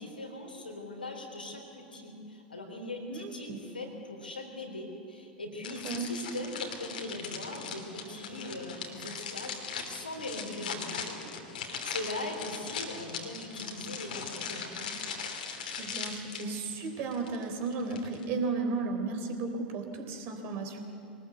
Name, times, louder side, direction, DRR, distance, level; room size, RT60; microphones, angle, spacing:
voice 1, 0.0-11.2 11.5-14.9, left 2 dB, 85° left, 2 dB, 3.8 m, -40 dB
sound 1, 5.6-18.3, left 6 dB, 70° left, 2.8 m, -40 dB
voice 2, 5.7-6.1 15.8-20.8, right 4 dB, 45° right, 4 dB, 3.6 m, -34 dB
23.0 x 19.5 x 8.1 m, 2.8 s
figure-of-eight pair, 85°, 5 cm